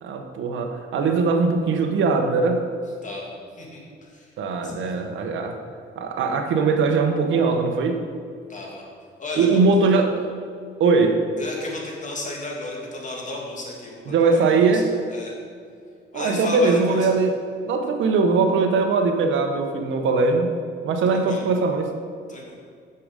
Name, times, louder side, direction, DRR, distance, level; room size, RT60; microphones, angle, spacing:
voice 1, 0.0-2.6 4.4-5.6 6.0-8.0 9.4-10.3 10.8-11.2 14.1-14.9 16.1-17.4 17.6-20.5 20.8-21.9, right 4 dB, 75° right, 5 dB, 1.1 m, -20 dB
voice 2, 3.0-3.8 4.1-4.3 4.6-5.0 8.5-8.8 9.2-9.6 11.4-14.8 15.1-15.3 16.1-17.1 21.1-21.4 22.3-22.5, left 2 dB, 40° left, -2 dB, 2.7 m, -34 dB
9.6 x 6.9 x 5.2 m, 2.1 s
cardioid pair, 90°, 20 cm